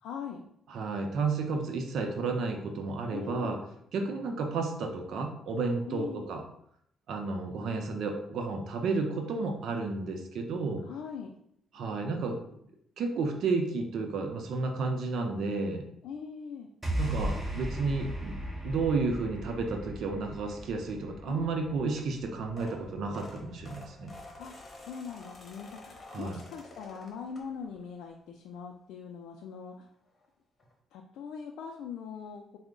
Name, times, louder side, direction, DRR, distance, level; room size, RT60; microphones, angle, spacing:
voice 1, 0.0-0.5 3.1-3.6 5.9-6.2 10.8-11.3 16.0-16.7 21.3-22.1 24.4-29.9 30.9-32.6, left 6 dB, 85° left, 1 dB, 0.3 m, -42 dB
voice 2, 0.7-3.6 3.9-6.4 7.1-10.8 11.7-12.4 13.0-15.8 17.0-18.4 18.6-24.1 26.1-26.4, right 3 dB, 70° right, 4 dB, 0.5 m, -32 dB
sound 1, 16.8-23.3, equal, 15° right, 1.1 m, -37 dB
sound 2, 22.2-27.9 28.3-28.6 29.8-29.9 30.1-30.3 30.6-30.7, left 2 dB, 40° left, 0.9 m, -50 dB
4.3 x 2.0 x 3.7 m, 0.71 s
cardioid pair, 90°, 0 cm